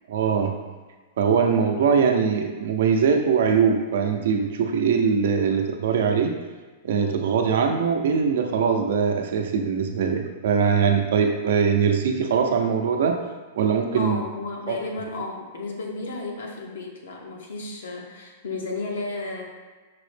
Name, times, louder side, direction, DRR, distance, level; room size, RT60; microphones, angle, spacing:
voice 1, 0.1-0.5 1.2-6.3 6.8-13.2 13.6-14.2 14.7-14.8, right 6 dB, 75° right, 4 dB, 0.5 m, -22 dB
voice 2, 13.9-19.4, left 3 dB, 85° left, 0 dB, 0.8 m, -33 dB
5.8 x 2.1 x 3.3 m, 1.3 s
hypercardioid pair, 140°, 0 cm